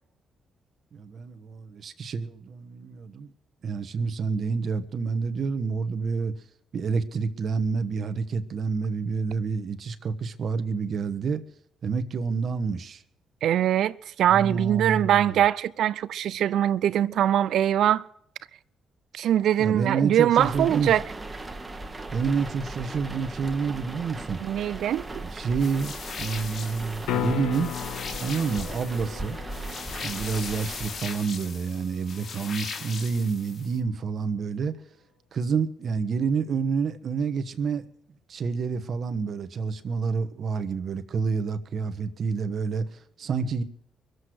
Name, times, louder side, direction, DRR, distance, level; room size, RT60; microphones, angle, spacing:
voice 1, 0.9-3.3 3.6-6.3 6.7-11.4 11.8-13.0 14.3-15.4 19.6-20.9 22.1-24.4 25.2-27.8 28.2-29.4 30.0-34.7 35.3-37.8 38.3-43.6, right 5 dB, 55° right, 1.2 m, -28 dB
voice 2, 13.4-18.1 19.1-21.0 24.4-25.2, right 11 dB, 75° right, 0.5 m, -22 dB
sound 1, 20.4-31.4, right 2 dB, 15° right, 1.4 m, -38 dB
sound 2, 25.6-33.8, left 5 dB, 55° left, 1.7 m, -39 dB
sound 3, 27.0-33.1 37.8-37.9, left 10 dB, 85° left, 1.0 m, -37 dB
23.0 x 8.0 x 6.3 m
cardioid pair, 90°, 0 cm